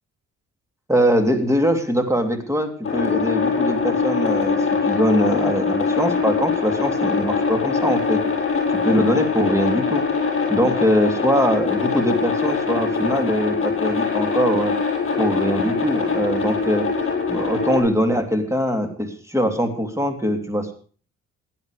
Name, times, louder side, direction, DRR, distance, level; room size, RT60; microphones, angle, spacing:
voice 1, 0.9-8.2 8.7-10.0 10.5-14.7 15.2-16.9 17.3-20.7, equal, 10° right, 6 dB, 2.9 m, -22 dB
sound 1, 2.8-17.8, left 5 dB, 45° left, 7.2 m, -23 dB
16.5 x 10.5 x 4.9 m, 0.43 s
cardioid pair, 90°, 30 cm